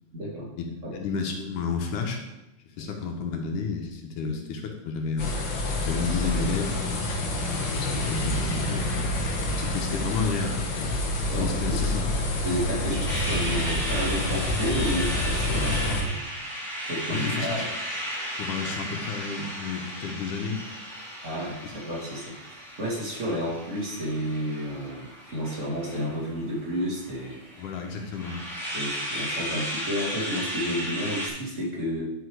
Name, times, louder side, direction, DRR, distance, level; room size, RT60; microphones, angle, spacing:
voice 1, 0.1-0.5 0.8-0.9 11.3-11.8 12.4-16.3 16.8-17.6 21.2-27.7 28.7-32.0, equal, 25° right, -5 dB, 2.2 m, -31 dB
voice 2, 0.9-2.2 2.8-5.3 5.9-6.8 7.7-8.8 9.6-11.0 11.3-12.0 17.1-17.7 18.4-20.6 27.6-28.4, left 5 dB, 75° left, 3 dB, 2.4 m, -31 dB
sound 1, 5.2-16.0, left 1 dB, 55° left, 1.2 m, -28 dB
sound 2, 13.1-31.3, equal, ahead, 1.9 m, -35 dB
10.5 x 5.7 x 4.7 m, 0.99 s
omnidirectional pair, 3.8 m